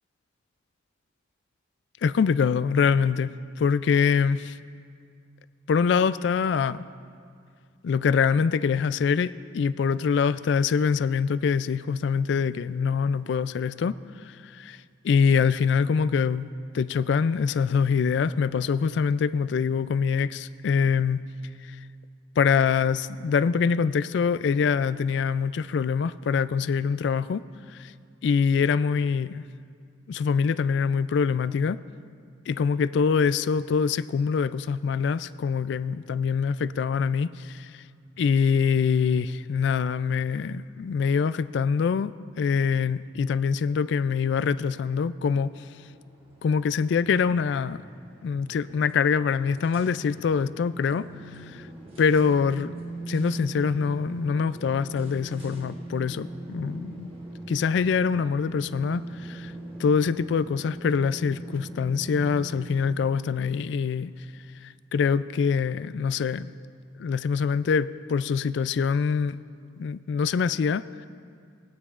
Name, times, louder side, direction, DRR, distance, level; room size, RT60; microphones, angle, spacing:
voice 1, 2.0-4.6 5.7-6.8 7.8-14.0 14.2-14.8 15.0-16.5 16.7-21.3 21.6-21.8 22.4-27.4 27.7-27.9 28.2-29.4 30.1-31.8 32.5-37.8 38.2-45.5 46.4-47.8 48.2-51.1 51.3-51.7 52.0-52.7 53.1-57.1 57.5-59.5 59.8-64.1 64.6-66.5 67.0-69.4 69.8-70.8, left 6 dB, 60° left, 15 dB, 0.3 m, -24 dB
sound 1, 45.4-62.8, right 2 dB, 30° right, 1.2 m, -41 dB
21.0 x 9.3 x 2.5 m, 2.3 s
head